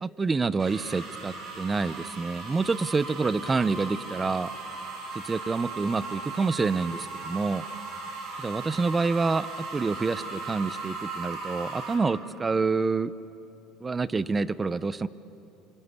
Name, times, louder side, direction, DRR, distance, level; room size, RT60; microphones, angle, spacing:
voice 1, 0.0-4.5 5.1-7.6 8.4-13.1 13.8-15.1, right 4 dB, 15° right, 16 dB, 0.6 m, -27 dB
sound 1, 0.6-11.9, right 3 dB, 45° right, 7.4 m, -38 dB
27.0 x 26.0 x 8.3 m, 2.9 s
cardioid pair, 150°, 0 cm